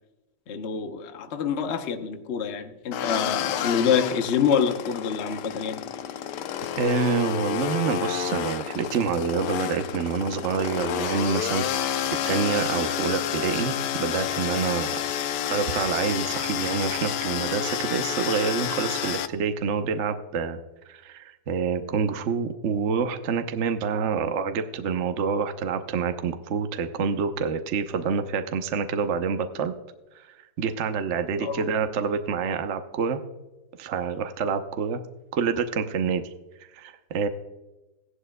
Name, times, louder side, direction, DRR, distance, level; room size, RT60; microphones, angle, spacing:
voice 1, 0.5-5.9 31.4-31.7, left 7 dB, 50° left, 0.8 m, -26 dB
sound 1, 2.9-19.3, left 10 dB, 70° left, 1.1 m, -29 dB
voice 2, 6.8-15.0 15.5-20.6 20.9-29.7 30.1-30.2 30.6-33.2 33.8-35.0 35.3-36.3 36.7-37.3, right 6 dB, 60° right, 0.8 m, -27 dB
17.0 x 11.5 x 2.2 m
omnidirectional pair, 2.2 m